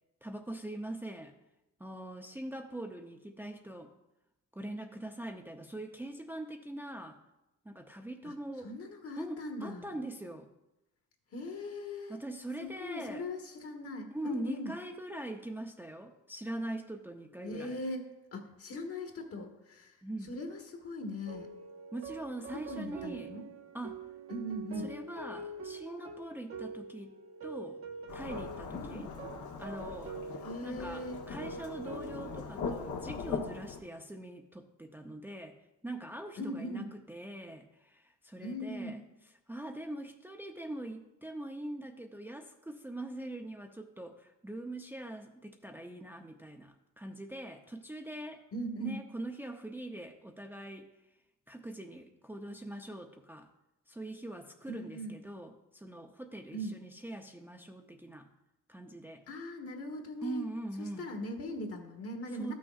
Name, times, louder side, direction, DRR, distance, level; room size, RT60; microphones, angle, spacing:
voice 1, 0.2-1.3 1.8-3.9 4.5-7.2 7.6-8.7 9.2-10.5 12.1-13.3 14.1-17.8 20.0-20.3 21.9-23.3 23.7-24.0 24.8-27.8 28.1-29.1 29.6-30.2 30.6-35.5 35.8-39.0 39.5-48.4 48.8-50.9 51.5-53.5 53.9-58.3 58.7-59.2 60.2-61.1 62.4-62.5, right 1 dB, 5° right, 2 dB, 0.5 m, -42 dB
voice 2, 8.6-10.0 11.3-12.2 12.6-14.7 17.4-19.9 20.2-21.5 22.5-23.4 24.3-24.9 28.7-29.1 30.4-31.2 36.4-36.9 38.4-39.0 48.5-49.0 54.7-55.1 56.5-56.8 59.3-60.5 60.8-62.5, left 1 dB, 50° left, 3 dB, 1.4 m, -40 dB
sound 1, 21.3-32.5, right 3 dB, 45° right, 0.9 m, -45 dB
Thunderstorm / Rain, 28.1-33.8, left 5 dB, 75° left, 1.0 m, -40 dB
13.0 x 6.2 x 2.4 m, 0.93 s
cardioid pair, 90°, 30 cm